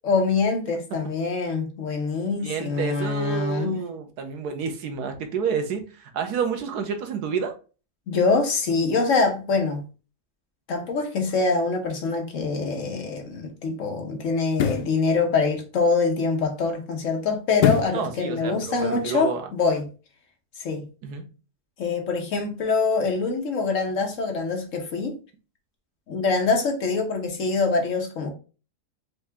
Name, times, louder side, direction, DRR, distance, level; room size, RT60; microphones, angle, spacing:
voice 1, 0.0-3.8 8.1-9.8 10.7-19.8 20.6-20.8 21.8-25.1 26.1-28.3, left 4 dB, 60° left, 1.2 m, -24 dB
voice 2, 2.4-7.5 17.9-19.4 21.0-21.3, right 6 dB, 80° right, 1.3 m, -29 dB
sound 1, 12.6-12.8 14.5-15.0 17.6-18.0 18.5-18.6, left 8 dB, 80° left, 1.1 m, -23 dB
4.6 x 2.7 x 3.4 m
omnidirectional pair, 1.7 m